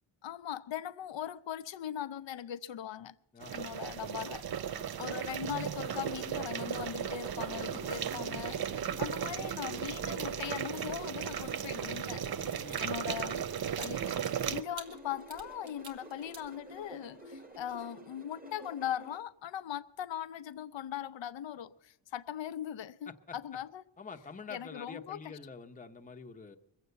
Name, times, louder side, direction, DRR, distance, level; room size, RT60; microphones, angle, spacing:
voice 1, 0.2-3.2 3.5-4.4 5.0-12.2 12.8-13.5 13.8-14.0 14.3-23.8 24.5-25.3, left 10 dB, 65° left, 0.7 m, -40 dB
voice 2, 3.3-3.7 4.7-5.0 12.6-13.0 23.1-23.4 24.0-26.6, left 4 dB, 15° left, 0.8 m, -47 dB
sound 1, 3.4-14.6, right 9 dB, 50° right, 0.6 m, -36 dB
sound 2, 5.9-19.2, right 1 dB, 20° right, 1.3 m, -50 dB
sound 3, 12.1-17.1 17.5-17.7, right 4 dB, 65° right, 2.0 m, -50 dB
22.0 x 8.1 x 6.8 m
cardioid pair, 90°, 49 cm